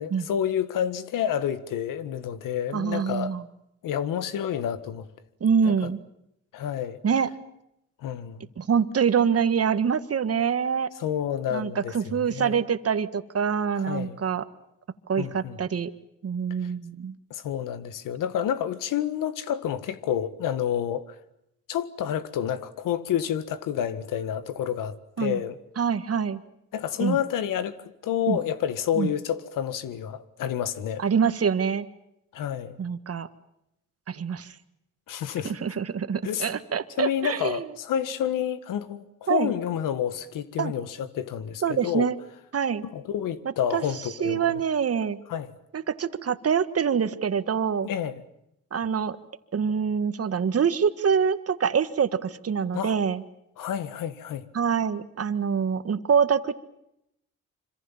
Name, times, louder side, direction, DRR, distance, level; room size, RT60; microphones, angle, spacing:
voice 1, 0.0-3.4 3.8-5.1 5.6-5.7 6.5-7.0 8.0-8.5 11.0-12.6 13.9-14.2 15.2-15.6 16.6-16.7 17.3-21.2 21.7-25.6 26.7-27.8 28.0-31.0 32.3-32.8 35.1-35.6 36.2-36.5 37.0-42.1 42.8-44.5 45.3-45.5 47.8-48.2 52.7-53.0 53.6-54.5, left 9 dB, 85° left, 1.8 m, -29 dB
voice 2, 2.7-3.4 5.4-6.0 7.0-7.3 8.6-10.9 11.5-14.4 15.1-15.9 16.2-17.2 25.2-25.4 25.8-26.4 27.0-27.2 28.3-28.4 29.0-29.1 31.0-31.9 32.8-33.3 34.1-34.5 35.4-37.6 39.3-39.5 40.6-40.7 41.6-42.2 42.5-42.8 43.7-43.8 44.2-45.2 45.7-47.9 48.7-49.2 49.5-53.2 54.5-56.5, right 7 dB, 50° right, 1.8 m, -25 dB
26.0 x 26.0 x 7.3 m
cardioid pair, 70°, 32 cm